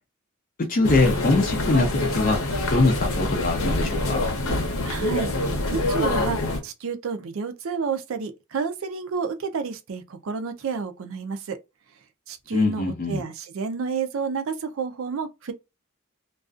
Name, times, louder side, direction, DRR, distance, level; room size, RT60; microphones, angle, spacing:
voice 1, 0.6-2.4 2.7-4.3 12.5-13.2, left 2 dB, 40° left, 0.4 m, -22 dB
sound 1, 0.8-6.6, left 2 dB, 80° left, 0.8 m, -25 dB
voice 2, 4.8-5.3 5.7-11.6 12.3-15.5, right 5 dB, 65° right, 0.4 m, -30 dB
2.4 x 2.3 x 2.4 m
head